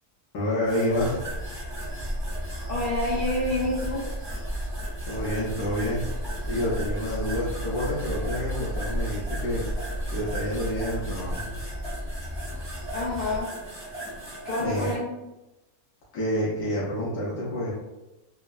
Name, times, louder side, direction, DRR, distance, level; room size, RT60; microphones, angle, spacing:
voice 1, 0.3-1.2 5.0-6.0 6.5-9.7 10.1-11.5 14.6-14.9 16.1-17.7, left 1 dB, 80° left, -7 dB, 1.2 m, -28 dB
sound 1, 0.6-15.0, right 1 dB, 15° right, 0.5 m, -40 dB
sound 2, 0.9-13.4, equal, 25° left, 0.8 m, -33 dB
voice 2, 2.6-4.1 12.9-13.5 14.4-15.2, left 1 dB, 55° left, -7 dB, 0.6 m, -28 dB
3.3 x 2.0 x 2.2 m, 1.0 s
omnidirectional pair, 1.6 m